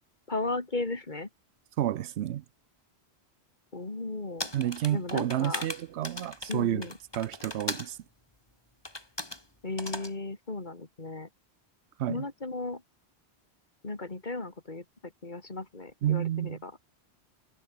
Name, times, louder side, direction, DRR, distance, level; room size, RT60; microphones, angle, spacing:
voice 1, 0.3-1.3 3.7-4.5 4.9-5.7 6.5-6.9 9.6-11.3 12.1-12.8 13.8-16.7, left 2 dB, 45° left, 2.6 m, -35 dB
voice 2, 1.8-2.4 4.5-6.9 7.1-8.0 12.0-12.2 16.0-16.6, right 12 dB, 80° right, 0.9 m, -30 dB
sound 1, 4.4-7.9 8.9-9.4 9.8-10.1, left 1 dB, 20° left, 2.9 m, -38 dB
omnidirectional pair, 1.1 m